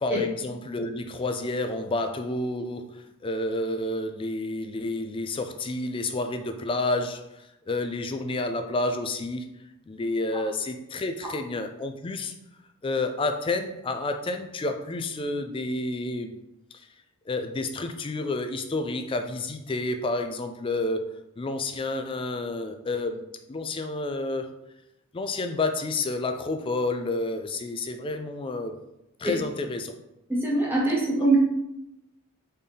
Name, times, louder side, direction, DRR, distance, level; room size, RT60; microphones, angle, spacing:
voice 1, 0.0-7.2 7.7-9.5 9.9-12.3 12.8-16.3 16.7-16.9 17.3-21.0 21.4-23.2 23.5-24.5 25.1-28.7 29.2-29.9 31.2-31.3, left 2 dB, 25° left, 7 dB, 0.3 m, -30 dB
voice 2, 30.3-31.4, right 2 dB, 10° right, -5 dB, 1.1 m, -23 dB
4.2 x 3.6 x 3.4 m, 0.89 s
head